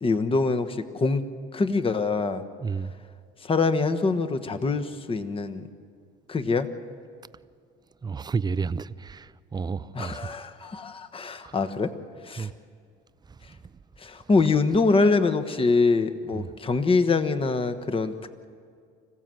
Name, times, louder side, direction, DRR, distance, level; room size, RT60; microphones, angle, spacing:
voice 1, 0.0-1.2 1.5-2.4 3.4-5.6 6.3-6.7 9.9-11.9 12.3-12.5 14.0-18.1, left 3 dB, 25° left, 1.3 m, -24 dB
voice 2, 2.6-2.9 8.0-10.4 11.4-11.6 12.4-12.5 16.3-16.5, right 5 dB, 20° right, 0.5 m, -31 dB
25.5 x 15.5 x 7.7 m
supercardioid pair, 90°, 20 cm